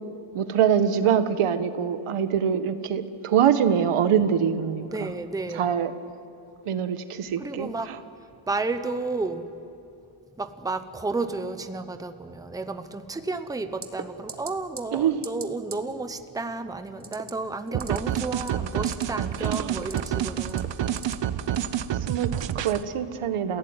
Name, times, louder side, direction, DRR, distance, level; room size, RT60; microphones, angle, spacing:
voice 1, 0.3-5.1 5.5-5.9 6.7-8.0 14.9-15.2 19.4-19.8 22.0-23.6, right 8 dB, 90° right, 10 dB, 1.5 m, -24 dB
voice 2, 4.8-5.7 7.4-7.9 8.5-9.5 10.4-20.7, right 3 dB, 5° right, 9 dB, 0.8 m, -32 dB
sound 1, 13.8-14.0 14.3-14.5 14.8-15.0 15.2-15.5 15.7-15.8 17.0-17.3 17.7-18.0 18.3-19.0 19.4-20.1 20.5-21.1 21.5-21.7, right 5 dB, 25° right, 1.3 m, -37 dB
sound 2, 17.7-22.8, right 10 dB, 60° right, 0.9 m, -28 dB
30.0 x 16.5 x 9.6 m, 2.7 s
wide cardioid pair, 175°, 49 cm